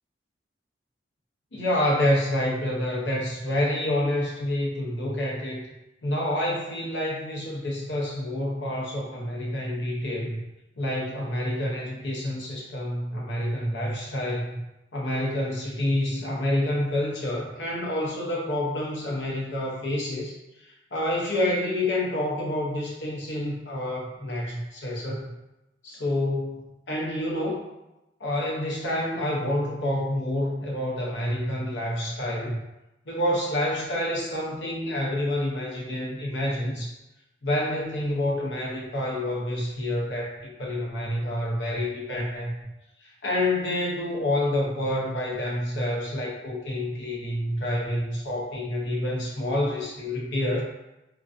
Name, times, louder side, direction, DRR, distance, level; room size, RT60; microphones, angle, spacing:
voice 1, 1.5-5.7 6.0-10.4 10.8-14.6 14.9-20.3 20.6-25.4 25.8-27.6 28.2-32.6 33.1-37.0 37.4-42.5 43.0-50.6, left 1 dB, 85° left, -2 dB, 0.6 m, -28 dB
2.3 x 2.2 x 2.4 m, 0.96 s
head